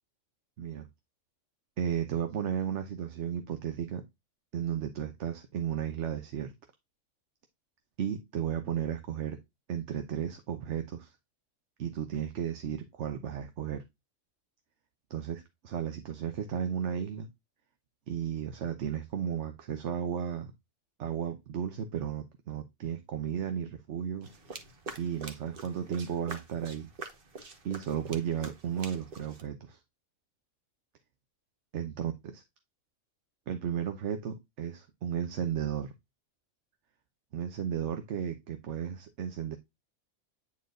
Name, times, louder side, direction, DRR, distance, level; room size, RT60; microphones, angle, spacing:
voice 1, 1.8-4.0 4.5-6.5 8.0-9.4 9.7-11.2 11.8-13.8 15.1-17.3 18.1-20.5 21.0-24.3 25.0-26.9 27.6-29.8 31.7-32.4 33.5-35.9 37.3-39.6, right 8 dB, 70° right, 1.1 m, -34 dB
running on the street, 24.2-29.4, right 4 dB, 50° right, 1.3 m, -45 dB
9.4 x 4.4 x 2.5 m
omnidirectional pair, 1.3 m